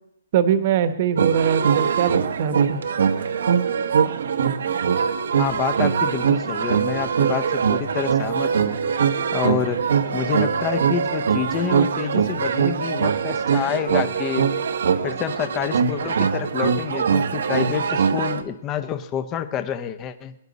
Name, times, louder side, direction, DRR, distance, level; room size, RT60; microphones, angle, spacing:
voice 1, 0.3-2.8, right 8 dB, 35° right, 10 dB, 1.2 m, -22 dB
sound 1, 1.2-18.4, right 6 dB, 65° right, 1.1 m, -22 dB
voice 2, 5.3-8.8 9.3-9.8 10.1-14.5 15.0-20.3, left 8 dB, 20° left, 10 dB, 0.7 m, -28 dB
23.0 x 10.5 x 4.1 m, 0.80 s
hypercardioid pair, 165°, 0 cm